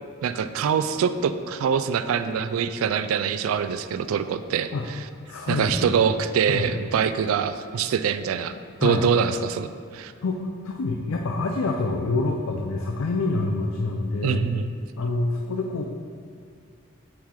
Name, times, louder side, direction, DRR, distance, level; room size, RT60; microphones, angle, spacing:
voice 1, 0.2-5.0 5.5-8.6 8.8-9.7 9.9-10.1 14.2-14.7, right 7 dB, 80° right, 12 dB, 0.3 m, -24 dB
voice 2, 5.3-6.0 6.5-6.7 8.8-9.0 10.2-14.4 15.0-15.8, left 3 dB, 80° left, 2 dB, 0.4 m, -26 dB
7.1 x 4.8 x 3.7 m, 2.2 s
head